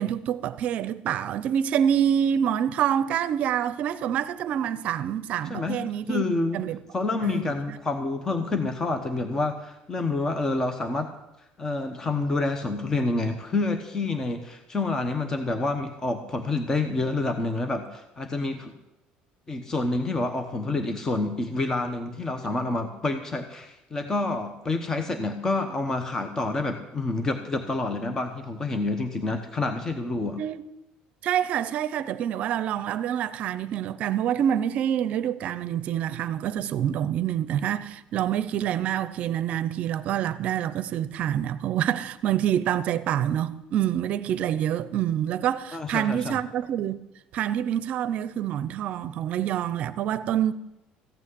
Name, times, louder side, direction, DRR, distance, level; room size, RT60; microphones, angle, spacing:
voice 1, 0.0-6.2 6.5-6.8 7.2-7.5 30.4-30.6 31.2-47.0 47.3-50.5, right 10 dB, 50° right, 0.6 m, -26 dB
voice 2, 5.5-5.8 6.1-6.6 6.9-11.1 11.6-18.7 19.5-30.4 45.7-46.4, left 2 dB, 20° left, 1.0 m, -28 dB
15.0 x 6.2 x 9.4 m
cardioid pair, 150°, 3 cm